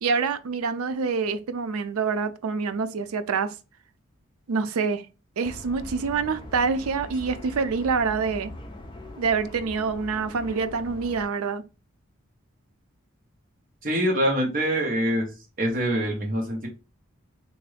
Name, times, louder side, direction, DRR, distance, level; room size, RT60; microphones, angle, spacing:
voice 1, 0.0-3.5 4.5-5.1 5.4-8.5 9.2-11.6, right 5 dB, 85° right, 0.4 m, -26 dB
sound 1, 5.4-11.2, left 1 dB, 20° left, 0.4 m, -41 dB
voice 2, 13.8-15.3 15.6-16.7, equal, 40° right, 1.1 m, -24 dB
3.7 x 2.6 x 3.2 m
head